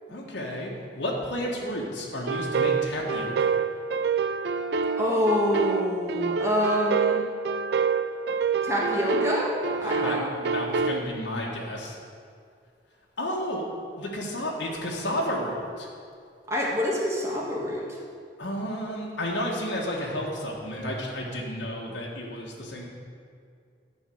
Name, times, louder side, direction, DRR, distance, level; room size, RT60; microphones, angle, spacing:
voice 1, 0.1-3.5 9.8-12.0 13.2-13.6 14.0-15.9 18.4-22.9, equal, 90° left, -3 dB, 1.7 m, -32 dB
sound 1, 2.3-11.0, right 5 dB, 65° right, 0.4 m, -27 dB
voice 2, 5.0-7.3 8.6-10.3 16.5-18.0, equal, 15° right, -4 dB, 1.7 m, -26 dB
11.0 x 5.4 x 7.9 m, 2.2 s
head